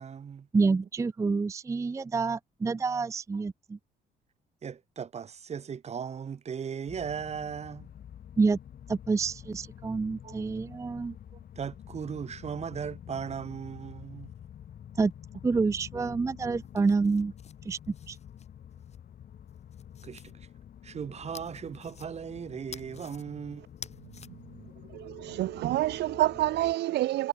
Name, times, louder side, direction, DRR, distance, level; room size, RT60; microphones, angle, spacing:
voice 1, 0.0-0.5 3.3-3.4 4.6-7.9 10.2-10.4 11.3-14.3 20.0-20.5 20.8-23.6, right 7 dB, 40° right, 1.2 m, -38 dB
voice 2, 0.5-3.8 8.4-8.6 8.9-11.1 15.0-15.1 15.4-17.3 17.7-17.8 18.1-18.2, right 4 dB, 15° right, 0.5 m, -28 dB
sound 1, 6.9-26.7, left 9 dB, 60° left, 4.2 m, -48 dB
sound 2, 16.6-19.0 19.5-20.3 21.3-22.4 22.7-23.2 23.7-24.3, left 7 dB, 40° left, 1.5 m, -49 dB
voice 3, 24.9-27.3, right 15 dB, 75° right, 0.5 m, -28 dB
cardioid pair, 110°, 17 cm